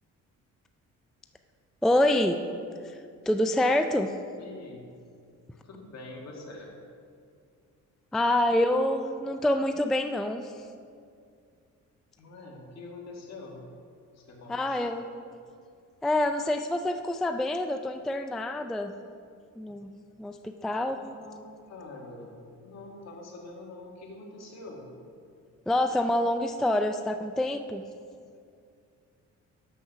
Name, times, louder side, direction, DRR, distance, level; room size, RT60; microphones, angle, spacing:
voice 1, 1.8-2.4 2.8-3.0 3.3-4.1 8.1-10.6 14.5-15.0 16.0-18.9 19.6-19.9 20.2-21.0 25.7-27.8, left 1 dB, ahead, 8 dB, 0.3 m, -26 dB
voice 2, 4.4-4.9 5.6-6.7 12.2-13.6 14.1-15.0 20.9-24.9, left 2 dB, 60° left, -1 dB, 1.9 m, -45 dB
7.2 x 6.3 x 5.8 m, 2.3 s
cardioid pair, 90°, 30 cm